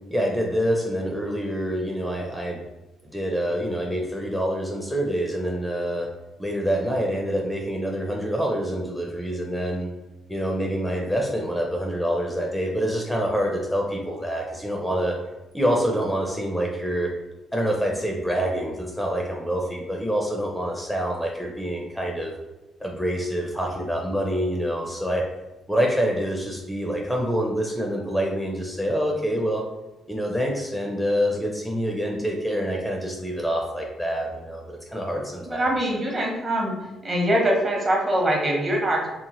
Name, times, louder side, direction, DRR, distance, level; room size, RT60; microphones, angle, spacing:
voice 1, 0.1-2.6 3.0-6.1 6.4-9.9 10.3-15.2 15.5-17.1 17.5-22.3 22.8-25.2 25.7-29.6 30.1-35.7, equal, 5° left, 0 dB, 0.4 m, -26 dB
voice 2, 35.5-36.7 37.0-39.1, right 1 dB, 40° right, -1 dB, 0.9 m, -23 dB
2.8 x 2.1 x 2.9 m, 1.0 s
cardioid pair, 90°, 0 cm